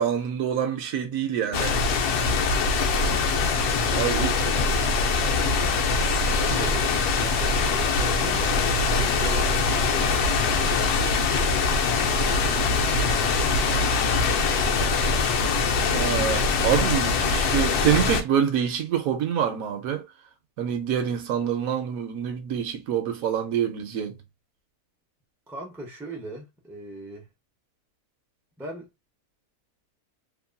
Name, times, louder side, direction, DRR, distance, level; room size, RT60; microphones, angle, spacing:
voice 1, 0.0-1.8 3.9-4.3 6.5-6.7 15.9-20.1 20.6-24.2, right 9 dB, 70° right, 1.0 m, -26 dB
sound 1, 1.5-18.2, left 4 dB, 90° left, 1.1 m, -23 dB
voice 2, 3.9-5.8 6.3-11.5 11.9-14.7 25.5-27.3 28.6-28.9, right 1 dB, 5° right, 0.3 m, -40 dB
2.9 x 2.4 x 2.2 m
omnidirectional pair, 1.6 m